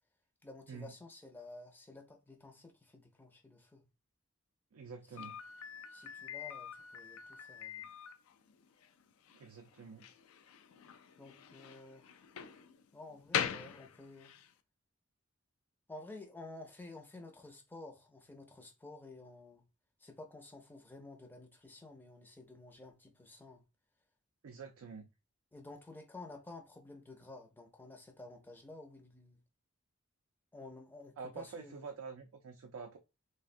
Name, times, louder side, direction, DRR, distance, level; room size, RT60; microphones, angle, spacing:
voice 1, 0.4-3.9 5.9-7.8 11.2-12.1 12.9-14.3 15.9-19.6 20.0-23.6 25.5-29.4 30.5-31.8, left 2 dB, 10° left, 0.5 m, -52 dB
voice 2, 4.7-5.4 9.3-10.1 24.4-25.1 31.2-33.0, right 5 dB, 85° right, 0.4 m, -47 dB
Slam, 5.2-14.5, left 9 dB, 85° left, 0.4 m, -43 dB
3.4 x 2.1 x 2.5 m
head